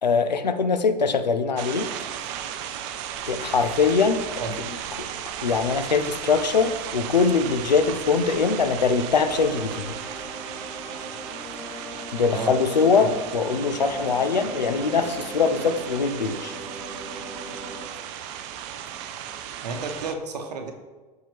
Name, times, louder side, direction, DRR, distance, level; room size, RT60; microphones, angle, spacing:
voice 1, 0.0-1.9 3.3-4.4 5.0-5.1 5.4-10.0 12.1-16.5, left 5 dB, 85° left, 9 dB, 0.5 m, -22 dB
sound 1, 1.6-20.1, right 9 dB, 45° right, 0.5 m, -36 dB
sound 2, 3.0-10.1, left 1 dB, 15° left, 1.1 m, -50 dB
sound 3, 9.1-17.8, right 1 dB, ahead, 2.0 m, -39 dB
voice 2, 19.6-20.7, right 3 dB, 75° right, 4 dB, 0.9 m, -31 dB
6.3 x 4.9 x 3.4 m, 1.3 s
figure-of-eight pair, 90°, 21 cm